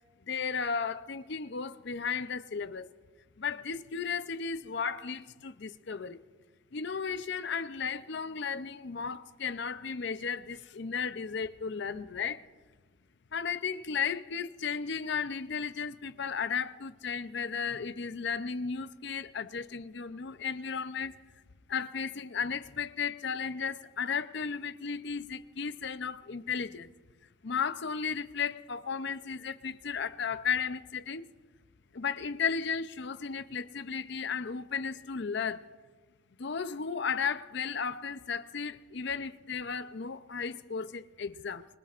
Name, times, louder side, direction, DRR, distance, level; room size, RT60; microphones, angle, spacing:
voice 1, 0.3-2.9 3.4-6.2 6.7-12.4 13.3-21.2 21.7-26.9 27.4-31.3 31.9-35.7 36.4-41.7, left 6 dB, 55° left, 0.6 m, -34 dB
26.0 x 20.5 x 2.5 m
head